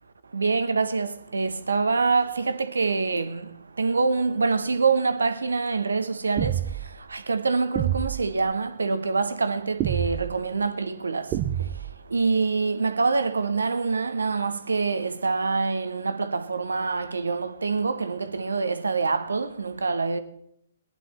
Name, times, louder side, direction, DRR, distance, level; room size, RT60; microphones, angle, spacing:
voice 1, 0.3-3.5 3.8-6.6 7.1-11.3 12.1-20.2, right 4 dB, 80° right, 1.2 m, -25 dB
sound 1, 6.4-6.9 7.8-8.3 9.8-10.4 11.3-12.0, right 12 dB, 30° right, 0.8 m, -27 dB
19.0 x 10.5 x 4.4 m
figure-of-eight pair, 130°, 0 cm